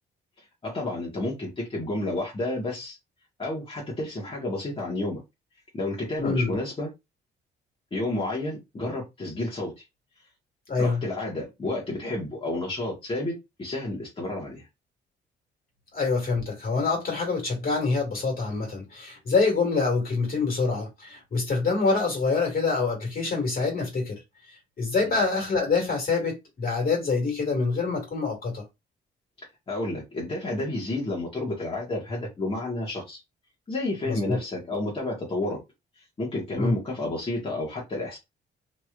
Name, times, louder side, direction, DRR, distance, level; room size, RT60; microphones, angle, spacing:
voice 1, 0.6-3.0 3.4-5.2 5.7-6.9 7.9-9.8 10.8-14.6 25.0-25.2 29.7-33.2 33.7-35.6 36.2-38.2, left 2 dB, 25° left, 1.4 m, -31 dB
voice 2, 6.2-6.5 10.7-11.0 15.9-24.2 24.5-28.6 34.1-34.4 36.6-36.7, left 4 dB, 45° left, 2.1 m, -26 dB
3.1 x 2.9 x 2.5 m
cardioid pair, 90°, 20 cm